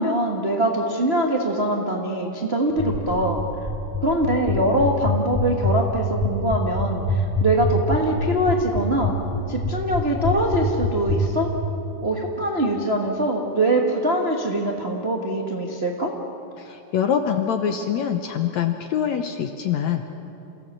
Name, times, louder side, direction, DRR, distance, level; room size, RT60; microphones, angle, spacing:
voice 1, 0.0-3.4 4.0-9.2 9.5-11.5 12.0-16.1, right 1 dB, 60° right, -1 dB, 0.6 m, -23 dB
sound 1, 2.8-11.2, left 4 dB, ahead, 1.5 m, -24 dB
voice 2, 16.6-20.1, left 8 dB, 75° left, 6 dB, 1.7 m, -24 dB
28.5 x 16.0 x 7.5 m, 2.8 s
omnidirectional pair, 4.1 m